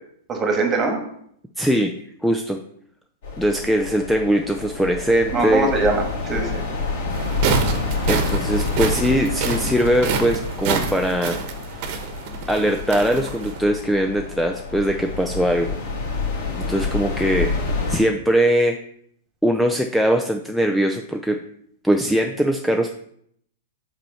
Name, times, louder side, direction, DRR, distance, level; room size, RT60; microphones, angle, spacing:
voice 1, 0.3-1.0 5.3-6.7, right 3 dB, 20° right, 3 dB, 1.6 m, -22 dB
voice 2, 1.6-1.9 2.2-2.6 3.4-5.7 8.1-11.4 12.5-15.7 16.6-17.6 17.9-18.8 19.4-21.4 21.8-22.9, equal, ahead, 4 dB, 0.4 m, -21 dB
sound 1, 3.2-18.0, left 4 dB, 65° left, 3.0 m, -28 dB
sound 2, 7.1-13.6, right 6 dB, 50° right, 1.1 m, -27 dB
5.2 x 4.3 x 5.6 m, 0.69 s
hypercardioid pair, 130°, 0 cm